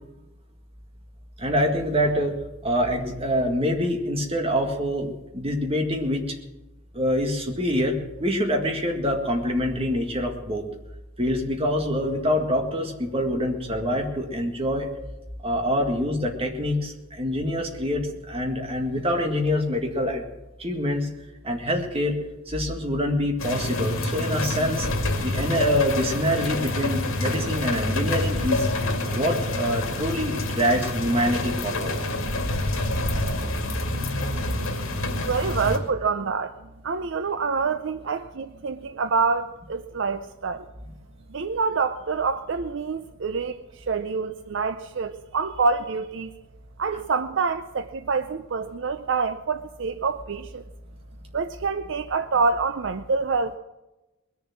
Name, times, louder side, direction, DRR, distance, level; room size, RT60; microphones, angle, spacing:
voice 1, 1.4-6.3 6.9-10.7 11.2-14.9 15.4-20.3 20.6-21.1 21.4-22.2 22.5-24.9 25.2-28.7 29.1-31.9 38.1-38.2, equal, 30° right, 3 dB, 1.9 m, -25 dB
sound 1, 23.4-35.8, left 2 dB, 85° left, 2.3 m, -27 dB
voice 2, 35.2-36.5 36.8-40.7 41.3-46.3 46.8-50.6 51.3-53.5, right 4 dB, 60° right, 11 dB, 0.5 m, -26 dB
21.0 x 7.0 x 7.4 m, 1.0 s
head